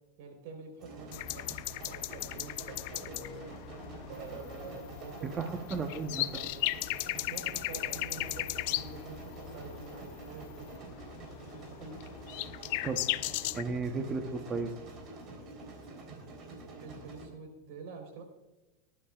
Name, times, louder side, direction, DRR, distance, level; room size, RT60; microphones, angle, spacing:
voice 1, 0.2-3.5 4.0-5.4 7.3-10.7 11.5-12.0 16.8-18.2, right 4 dB, 65° right, 3 dB, 3.9 m, -47 dB
sound 1, 0.8-17.3, right 2 dB, 40° right, 3.7 m, -47 dB
sound 2, 1.1-13.6, left 19 dB, 60° left, 0.4 m, -37 dB
sound 3, 4.1-10.8, left 5 dB, 45° left, 3.0 m, -58 dB
voice 2, 5.2-6.5 12.8-13.0 13.5-14.7, right 4 dB, 25° right, 5 dB, 0.9 m, -34 dB
19.5 x 11.5 x 2.4 m, 1.1 s
supercardioid pair, 145°, 0 cm